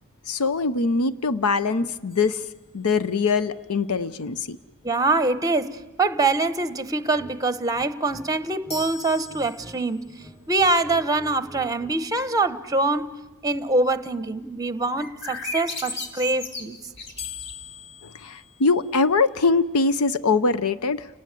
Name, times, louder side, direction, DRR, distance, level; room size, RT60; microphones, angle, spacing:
voice 1, 0.3-2.4 2.7-4.6 18.2-21.1, left 4 dB, 80° left, 0.7 m, -22 dB
sound 1, 2.1-3.4 8.7-10.2 17.2-19.3, left 4 dB, 30° left, 2.8 m, -41 dB
voice 2, 4.8-10.0 10.5-13.1 13.4-16.8, right 2 dB, 15° right, 0.9 m, -24 dB
sound 2, 7.1-7.3 7.7-8.8 9.1-9.8 10.0-12.0, equal, 10° left, 5.1 m, -46 dB
sound 3, 15.0-17.7, left 3 dB, 55° left, 2.6 m, -35 dB
29.5 x 19.0 x 8.3 m
head